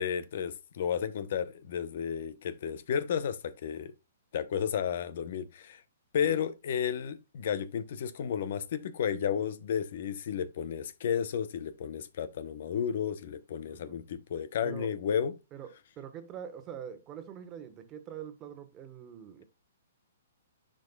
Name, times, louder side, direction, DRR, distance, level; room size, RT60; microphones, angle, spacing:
voice 1, 0.0-3.9 4.3-5.8 6.1-15.3, left 8 dB, 55° left, 0.8 m, -32 dB
voice 2, 13.7-14.0 14.6-14.9 15.5-19.4, right 9 dB, 25° right, 1.1 m, -44 dB
10.5 x 5.2 x 2.3 m
hypercardioid pair, 150°, 0 cm